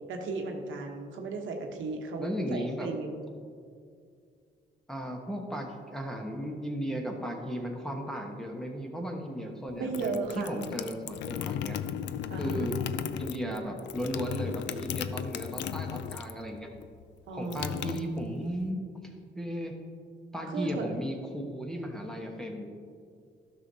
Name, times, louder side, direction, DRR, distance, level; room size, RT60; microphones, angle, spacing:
voice 1, 0.1-3.3 9.7-10.7 12.3-12.7 17.3-18.1 20.5-20.9, right 3 dB, 75° right, 3 dB, 1.0 m, -35 dB
voice 2, 2.2-2.9 4.9-11.8 12.4-12.8 13.2-16.7 17.3-18.8 19.3-19.7 20.3-22.7, equal, ahead, 1 dB, 1.1 m, -35 dB
sound 1, 9.7-16.5 16.7-18.6, left 9 dB, 65° left, 0.4 m, -35 dB
12.0 x 6.1 x 2.7 m, 2.2 s
cardioid pair, 90°, 20 cm